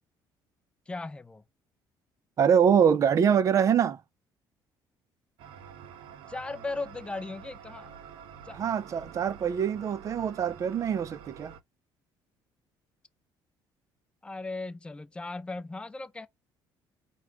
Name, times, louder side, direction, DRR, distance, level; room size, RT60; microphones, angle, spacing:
voice 1, 0.9-1.4 6.3-8.0 8.4-8.6 14.2-16.3, left 3 dB, 10° left, 0.5 m, -37 dB
voice 2, 2.4-4.0 8.5-11.5, right 7 dB, 40° right, 0.5 m, -24 dB
sound 1, 5.4-11.6, right 7 dB, 80° right, 0.7 m, -48 dB
4.7 x 2.3 x 4.9 m
cardioid pair, 140°, 9 cm